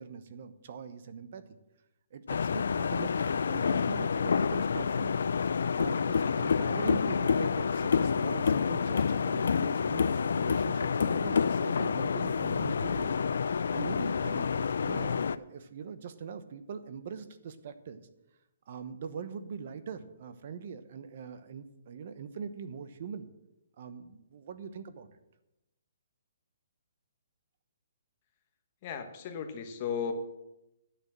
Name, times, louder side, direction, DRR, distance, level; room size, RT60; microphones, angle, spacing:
voice 1, 0.0-1.4 2.1-5.1 5.8-13.2 13.5-18.1 18.7-23.3 23.8-25.1, right 6 dB, 45° right, 11 dB, 0.9 m, -42 dB
sound 1, 2.3-15.4, left 6 dB, 75° left, 0.4 m, -28 dB
voice 2, 28.8-30.1, left 7 dB, 30° left, 6 dB, 1.2 m, -35 dB
11.0 x 6.8 x 7.5 m, 0.93 s
hypercardioid pair, 170°, 0 cm